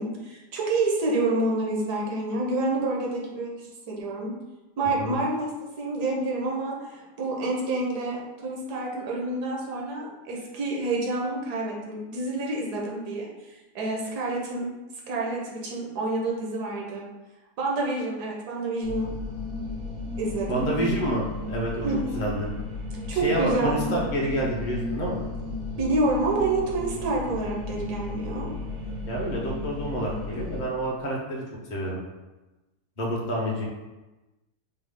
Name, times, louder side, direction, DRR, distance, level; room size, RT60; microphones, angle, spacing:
voice 1, 0.0-4.3 4.8-5.5 5.8-14.7 15.1-17.1 17.6-19.1 20.2-20.7 21.8-22.2 23.1-24.1 25.8-28.5, right 2 dB, 85° right, -2 dB, 1.4 m, -28 dB
sound 1, 18.8-30.6, left 2 dB, 60° right, 0.5 m, -34 dB
voice 2, 20.5-21.9 22.1-22.5 23.1-25.2 29.0-31.4 31.7-32.0 33.0-33.7, right 1 dB, 45° left, -3 dB, 0.6 m, -28 dB
4.6 x 2.0 x 3.5 m, 1.1 s
omnidirectional pair, 1.7 m